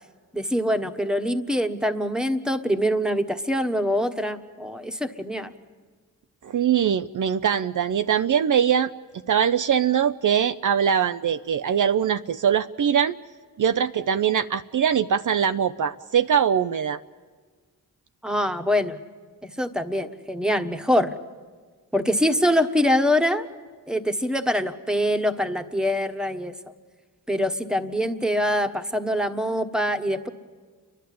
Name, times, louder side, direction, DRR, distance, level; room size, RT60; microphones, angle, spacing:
voice 1, 0.3-5.5 18.2-19.0 19.4-21.1 21.9-23.5 23.9-26.5 27.3-30.3, equal, ahead, 7 dB, 1.3 m, -24 dB
voice 2, 6.4-8.9 9.3-13.1 13.6-17.0, right 8 dB, 55° right, 10 dB, 0.6 m, -22 dB
29.5 x 11.5 x 8.5 m, 1.5 s
cardioid pair, 50°, 37 cm